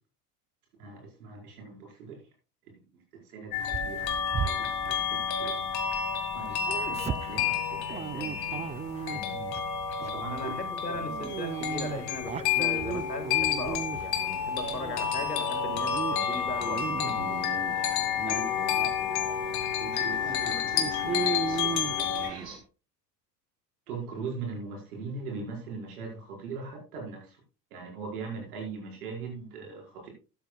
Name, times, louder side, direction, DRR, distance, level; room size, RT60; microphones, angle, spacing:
voice 1, 0.8-2.2 3.1-4.1 4.4-5.9 6.2-9.4 10.0-10.5 10.9-11.1 18.3-19.4 19.8-21.2 21.5-22.5 23.9-27.4 27.7-30.1, right 4 dB, 65° right, 0 dB, 5.2 m, -41 dB
sound 1, 3.5-22.3, left 8 dB, 50° left, 2.0 m, -30 dB
Dog, 3.7-6.0 6.3-9.6 10.0-10.3 11.1-14.2 14.6-15.4 15.7-16.1 16.5-17.8 18.2-18.4 19.0-19.1 19.5-19.6 20.2-22.5, right 8 dB, 15° right, 0.4 m, -36 dB
voice 2, 10.3-17.5, left 2 dB, 90° left, 8 dB, 1.9 m, -38 dB
sound 2, 12.7-22.6, right 3 dB, 85° right, 2.1 m, -49 dB
12.5 x 12.0 x 2.3 m, 0.32 s
figure-of-eight pair, 65°, 47 cm